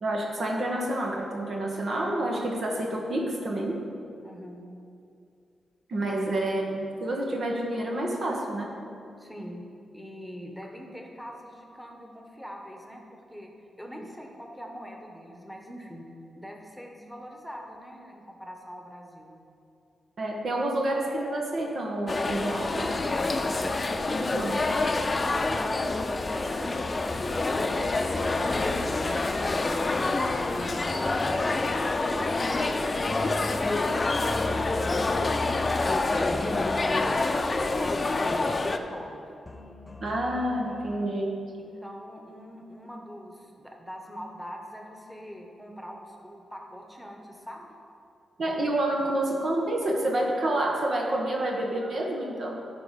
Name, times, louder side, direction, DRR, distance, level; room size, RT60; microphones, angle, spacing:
voice 1, 0.0-3.8 5.9-8.7 20.2-22.9 24.2-24.6 40.0-41.3 48.4-52.6, right 1 dB, 65° right, -1 dB, 1.3 m, -28 dB
voice 2, 4.2-4.7 9.2-9.7 9.9-13.5 13.8-16.1 16.4-19.3 23.3-23.8 25.2-26.8 27.3-31.8 32.1-33.0 33.4-34.6 34.8-39.2 41.6-47.7, equal, ahead, 1 dB, 1.4 m, -43 dB
sound 1, 22.1-38.8, left 3 dB, 40° left, 0.6 m, -27 dB
sound 2, 26.0-41.0, left 1 dB, 25° left, 1.0 m, -44 dB
11.0 x 4.4 x 5.1 m, 2.5 s
supercardioid pair, 40°, 0 cm